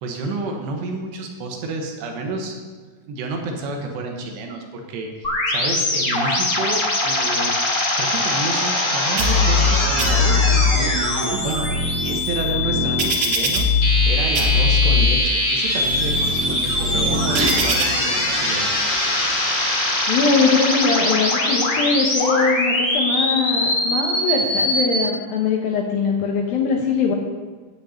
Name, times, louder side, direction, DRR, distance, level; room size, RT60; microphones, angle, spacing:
voice 1, 0.0-2.6 3.1-13.7 14.1-18.7, right 3 dB, 75° right, 3 dB, 3.2 m, -30 dB
sound 1, 5.2-25.0, left 1 dB, 50° left, 0.9 m, -22 dB
sound 2, 9.2-9.7 10.0-10.7 11.3-14.1 14.4-15.1 15.6-17.8, left 3 dB, 60° right, 2.2 m, -21 dB
voice 2, 20.1-27.2, left 5 dB, 75° left, 0 dB, 2.2 m, -21 dB
10.0 x 5.9 x 8.3 m, 1.4 s
omnidirectional pair, 5.2 m